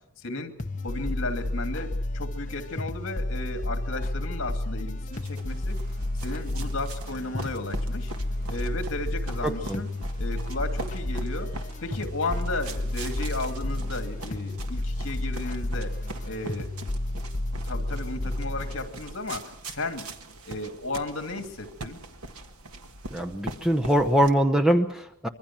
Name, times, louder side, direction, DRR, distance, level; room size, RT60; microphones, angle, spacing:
voice 1, 0.2-0.6 0.8-5.8 6.2-8.1 8.5-9.9 10.2-11.6 11.8-15.9 16.3-16.7 17.7-20.1 20.4-22.0, left 2 dB, 60° left, 6 dB, 2.6 m, -34 dB
sound 1, 0.6-18.9, left 1 dB, 35° left, 0.9 m, -31 dB
sound 2, 5.1-24.3, right 2 dB, 80° right, 1.7 m, -42 dB
voice 2, 9.4-9.8 23.1-25.3, equal, 5° right, 4 dB, 0.8 m, -23 dB
25.5 x 22.5 x 6.1 m, 0.72 s
head